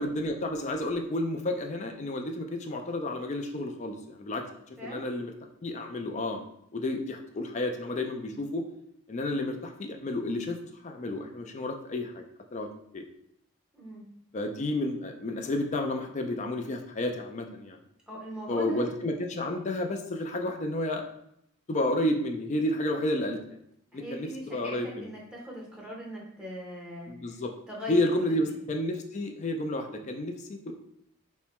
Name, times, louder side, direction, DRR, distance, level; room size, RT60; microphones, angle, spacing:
voice 1, 0.0-4.4 4.8-5.3 5.6-6.4 6.7-8.6 9.1-12.2 12.5-12.7 12.9-13.0 14.3-17.8 18.5-21.0 21.7-23.6 23.9-25.1 27.1-27.5 27.9-30.7, left 1 dB, 30° left, 5 dB, 0.3 m, -31 dB
voice 2, 4.8-5.2 13.7-14.1 18.1-18.9 23.9-27.4 27.7-28.0 28.3-28.6, equal, 5° right, -3 dB, 0.7 m, -41 dB
4.3 x 2.1 x 2.9 m, 0.76 s
head